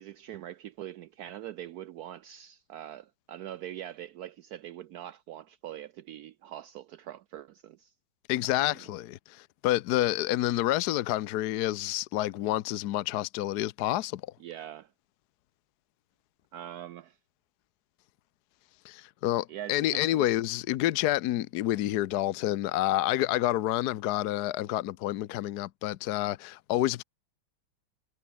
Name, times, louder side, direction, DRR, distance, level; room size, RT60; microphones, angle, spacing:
voice 1, 0.0-7.9 8.4-8.8 14.4-14.9 16.5-17.2 19.5-20.4, right 12 dB, 80° right, 0.8 m, -43 dB
voice 2, 8.3-14.2 18.8-27.0, left 15 dB, 70° left, 1.0 m, -28 dB
omnidirectional pair, 2.3 m